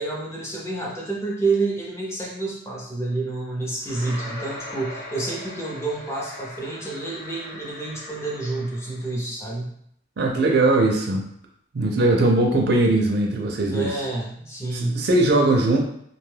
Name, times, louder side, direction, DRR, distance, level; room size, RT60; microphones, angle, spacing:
voice 1, 0.0-9.7 13.7-15.1, right 3 dB, 15° left, -3 dB, 0.6 m, -29 dB
sound 1, 3.8-9.2, left 1 dB, 75° left, 1.1 m, -39 dB
voice 2, 10.2-11.3 11.7-13.9 14.7-15.8, right 2 dB, 55° right, 1 dB, 0.4 m, -20 dB
2.7 x 2.2 x 3.2 m, 0.70 s
head